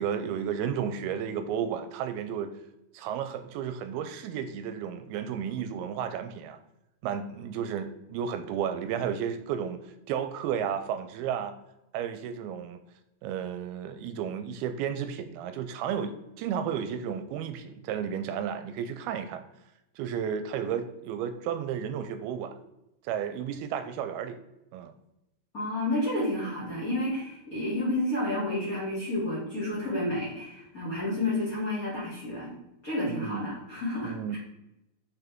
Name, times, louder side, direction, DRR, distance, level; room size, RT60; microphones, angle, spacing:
voice 1, 0.0-2.5 2.9-6.6 7.0-11.6 11.9-12.8 13.2-19.4 20.0-22.6 23.0-24.4 24.7-24.9 33.1-33.5 34.0-34.4, right 8 dB, 85° right, 10 dB, 2.4 m, -33 dB
voice 2, 25.5-32.5 32.8-34.4, left 1 dB, 25° left, -5 dB, 2.4 m, -30 dB
5.9 x 5.9 x 3.5 m, 0.90 s
omnidirectional pair, 4.4 m